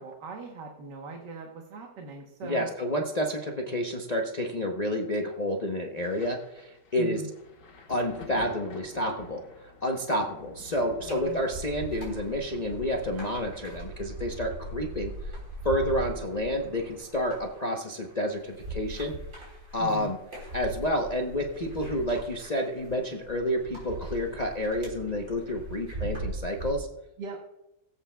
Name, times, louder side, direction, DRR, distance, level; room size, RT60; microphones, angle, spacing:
voice 1, 0.0-2.7 7.0-7.3 11.1-11.4 19.8-20.1 27.2-27.4, right 3 dB, 80° right, 1 dB, 1.8 m, -40 dB
voice 2, 2.4-7.2 7.9-9.4 9.8-15.4 15.6-19.1 19.7-20.2 20.5-26.9, equal, 35° left, 0 dB, 0.7 m, -29 dB
Thunder, 6.0-19.3 19.6-20.9 21.8-21.9, left 3 dB, 80° left, 2.1 m, -51 dB
sound 1, 11.0-26.7, right 2 dB, 45° right, 3.9 m, -40 dB
21.0 x 8.0 x 2.3 m, 0.89 s
omnidirectional pair, 1.8 m